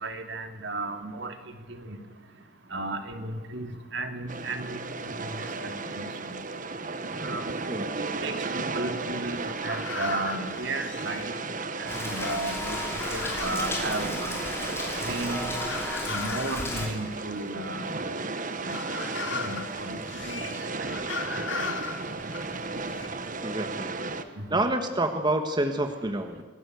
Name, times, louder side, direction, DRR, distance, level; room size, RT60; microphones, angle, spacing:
voice 1, 0.0-1.3 1.7-2.0 2.7-4.8 5.0-6.4 7.2-7.6 8.1-11.3 11.8-12.8 13.1-14.3 15.1-15.4 16.1-18.0 18.6-18.8 19.3-20.4 20.8-20.9 21.5-21.7 24.4-24.6, right 2 dB, 65° right, 5 dB, 2.8 m, -34 dB
sound 1, 4.3-24.2, right 3 dB, 45° right, 1.4 m, -34 dB
sound 2, 7.9-11.9 12.1-23.1, left 4 dB, 70° left, 2.6 m, -38 dB
Rain, 11.9-16.9, left 1 dB, 15° left, 5.7 m, -34 dB
voice 2, 23.4-23.9 24.5-26.4, right 1 dB, 25° right, 6 dB, 1.5 m, -28 dB
26.0 x 18.5 x 8.1 m, 1.4 s
head